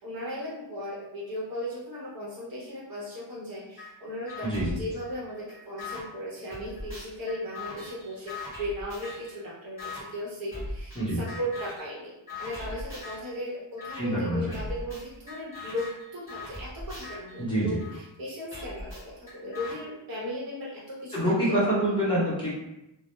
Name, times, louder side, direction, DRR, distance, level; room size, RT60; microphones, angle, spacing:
voice 1, 0.0-21.6, equal, 50° right, -6 dB, 0.8 m, -37 dB
sound 1, 3.8-3.9 4.3-6.0 6.5-9.3 9.8-10.0 10.5-11.0 11.3-11.9 12.3-13.3 13.8-14.0 14.5-18.0 18.5-19.7, left 2 dB, 5° right, 1.0 m, -40 dB
voice 2, 4.4-4.8 11.0-11.2 13.9-14.5 17.4-17.8 21.1-22.5, right 1 dB, 10° left, -11 dB, 0.7 m, -26 dB
2.2 x 2.0 x 2.9 m, 0.88 s
wide cardioid pair, 175°, 45 cm